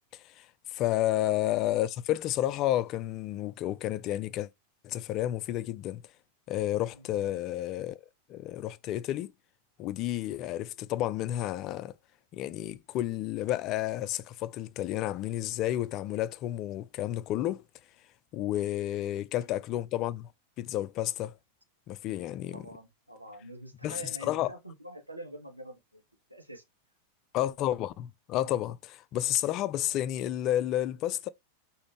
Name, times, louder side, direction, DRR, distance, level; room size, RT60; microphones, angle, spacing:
voice 1, 0.1-4.5 4.8-6.0 6.5-8.0 8.3-9.3 9.8-11.9 12.3-17.6 18.3-20.3 20.6-21.3 21.9-22.6 23.8-24.5 27.3-31.3, left 13 dB, 35° left, 0.3 m, -31 dB
voice 2, 6.9-7.4 22.5-26.0 26.3-26.6, right 1 dB, 90° right, 1.0 m, -46 dB
5.0 x 2.6 x 3.2 m
figure-of-eight pair, 90°, 0 cm